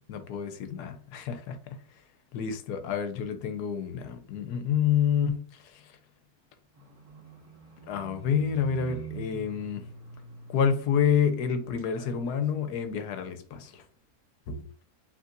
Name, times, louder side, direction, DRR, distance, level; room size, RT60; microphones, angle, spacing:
voice 1, 0.1-1.8 2.3-5.5 5.7-5.8 7.9-9.8 10.5-13.8 14.5-14.7, left 7 dB, 80° left, 1.2 m, -28 dB
Livestock farm animals working animals, 6.7-11.5 11.8-12.5 12.9-13.1, right 4 dB, 15° right, 1.4 m, -45 dB
5.3 x 3.3 x 2.5 m
omnidirectional pair, 1.7 m